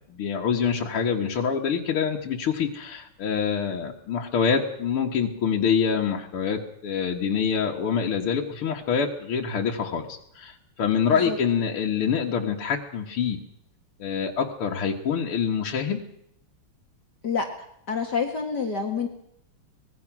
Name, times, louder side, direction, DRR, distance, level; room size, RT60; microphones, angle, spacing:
voice 1, 0.1-13.4 14.0-16.0, left 6 dB, 75° left, -1 dB, 2.5 m, -26 dB
voice 2, 11.1-11.4 17.2-17.5 17.9-19.1, left 5 dB, 50° left, 3 dB, 2.3 m, -27 dB
25.0 x 20.0 x 6.1 m, 0.73 s
omnidirectional pair, 2.4 m